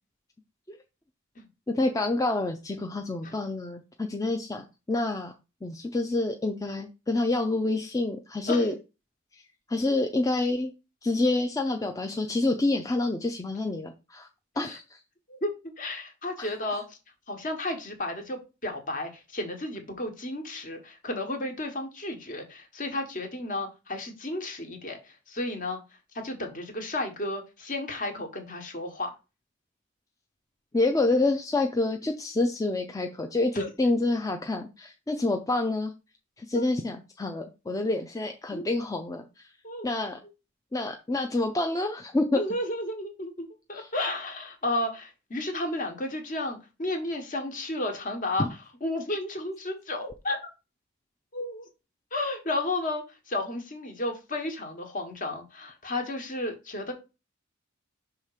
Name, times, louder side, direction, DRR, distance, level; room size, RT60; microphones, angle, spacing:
voice 1, 1.7-5.3 5.6-8.7 9.7-10.7 11.0-14.3 14.6-15.0 16.4-16.8 30.7-35.9 36.4-39.5 39.8-40.2 40.7-42.4 43.7-43.9 48.4-48.5, left 2 dB, 15° left, 4 dB, 0.5 m, -28 dB
voice 2, 15.3-17.0 17.3-25.8 26.1-29.1 33.5-33.7 36.5-36.6 38.5-38.6 39.6-39.9 42.3-48.5 48.8-50.5 51.3-51.7 52.1-56.9, left 1 dB, 40° left, 5 dB, 1.4 m, -33 dB
5.8 x 3.6 x 4.9 m, 0.29 s
head